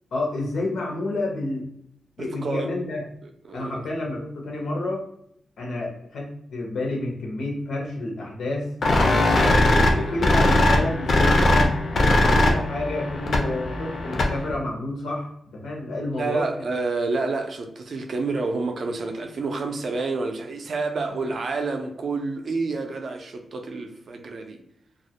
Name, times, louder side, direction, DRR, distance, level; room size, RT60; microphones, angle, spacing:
voice 1, 0.1-1.7 2.2-3.0 3.5-5.0 5.6-8.7 9.6-11.7 12.3-16.6 21.1-21.2, left 2 dB, 85° left, -1 dB, 0.7 m, -30 dB
voice 2, 2.2-2.7 3.4-3.8 9.4-10.2 14.2-14.3 16.1-24.6, right 3 dB, 55° right, 4 dB, 0.3 m, -29 dB
sound 1, 8.8-14.5, left 1 dB, 55° left, 0.4 m, -20 dB
2.3 x 2.0 x 2.7 m, 0.73 s
wide cardioid pair, 150°, 0 cm